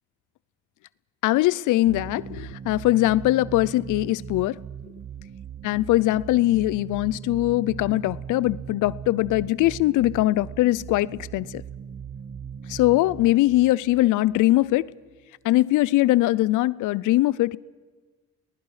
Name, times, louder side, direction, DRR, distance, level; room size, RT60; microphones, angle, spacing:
voice 1, 1.2-4.6 5.6-11.6 12.7-14.9 15.4-17.6, left 17 dB, 90° left, 0.5 m, -21 dB
sound 1, 1.9-15.1, right 7 dB, 35° right, 0.7 m, -39 dB
29.0 x 19.5 x 4.9 m
cardioid pair, 90°, 30 cm